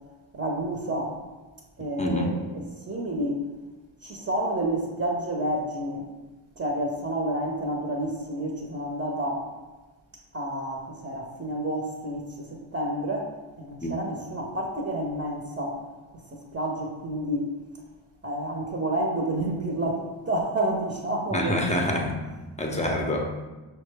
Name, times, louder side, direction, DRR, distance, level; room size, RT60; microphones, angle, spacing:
voice 1, 0.3-1.1 1.8-2.6 2.9-3.4 4.0-6.0 6.6-9.4 10.3-13.3 13.6-15.8 16.3-17.5 18.2-21.6, right 1 dB, 25° right, -1 dB, 0.8 m, -29 dB
voice 2, 2.0-2.4 13.8-13.9 21.3-22.2 22.6-23.3, left 1 dB, 15° left, 1 dB, 0.7 m, -26 dB
5.7 x 2.2 x 3.3 m, 1.2 s
cardioid pair, 65°, 50 cm